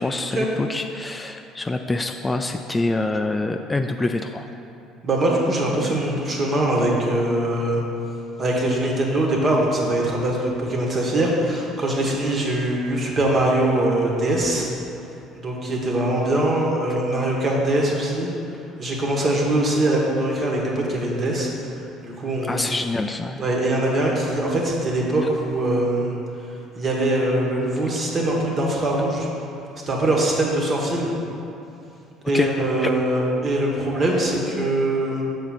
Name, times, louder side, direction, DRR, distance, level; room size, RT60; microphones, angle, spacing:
voice 1, 0.0-4.5 22.4-23.4 32.3-32.5 32.8-32.9, left 2 dB, 20° left, 5 dB, 0.3 m, -25 dB
voice 2, 5.0-7.8 8.4-14.7 15.3-18.3 18.8-21.5 22.0-22.7 23.4-26.2 26.7-29.3 29.9-31.1 32.3-35.2, right 1 dB, 40° right, -2 dB, 1.4 m, -22 dB
6.4 x 3.7 x 5.8 m, 2.8 s
hypercardioid pair, 60°, 0 cm